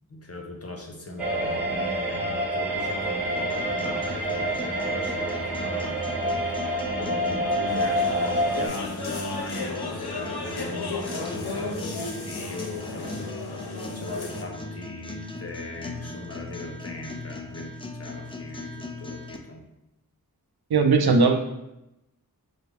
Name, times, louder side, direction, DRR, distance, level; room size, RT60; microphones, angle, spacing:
voice 1, 0.1-6.0 7.0-13.3 13.9-17.7 18.0-19.6, left 2 dB, 40° left, 1 dB, 0.8 m, -38 dB
sound 1, 1.2-8.7, right 1 dB, 5° right, 1.1 m, -27 dB
sound 2, 3.4-19.4, left 2 dB, 15° left, 0.3 m, -40 dB
sound 3, 7.7-14.4, left 3 dB, 85° left, 0.6 m, -34 dB
voice 2, 20.7-21.3, right 4 dB, 80° right, 4 dB, 0.5 m, -18 dB
4.9 x 2.1 x 3.4 m, 0.89 s
wide cardioid pair, 40°, 37 cm